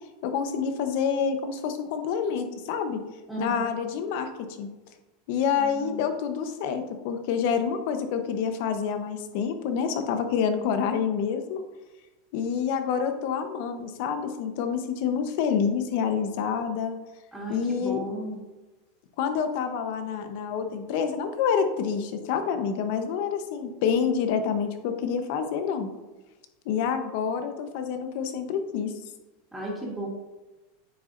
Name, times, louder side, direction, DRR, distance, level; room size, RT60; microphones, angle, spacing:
voice 1, 0.2-3.0 3.4-4.3 4.6-4.7 5.3-11.6 12.3-16.9 17.5-18.0 19.2-25.9 26.6-28.9, left 7 dB, 60° left, 7 dB, 0.9 m, -27 dB
voice 2, 3.3-3.7 5.6-6.1 17.3-18.4 29.5-30.1, right 1 dB, 5° right, -7 dB, 2.6 m, -34 dB
9.2 x 6.5 x 2.6 m, 1.1 s
supercardioid pair, 140°, 0 cm